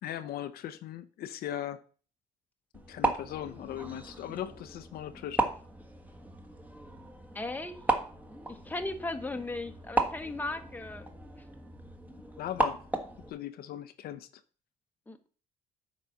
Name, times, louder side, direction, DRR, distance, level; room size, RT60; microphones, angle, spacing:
voice 1, 0.0-1.8 2.9-5.5 12.4-12.8 13.3-14.4, left 11 dB, 65° left, 0.6 m, -38 dB
sound 1, 2.7-13.3, right 2 dB, 10° right, 1.3 m, -35 dB
voice 2, 7.3-7.8 8.5-11.1 11.3-11.4 15.1-15.3, left 2 dB, 10° left, 1.0 m, -37 dB
9.2 x 4.1 x 6.3 m
cardioid pair, 110°, 17 cm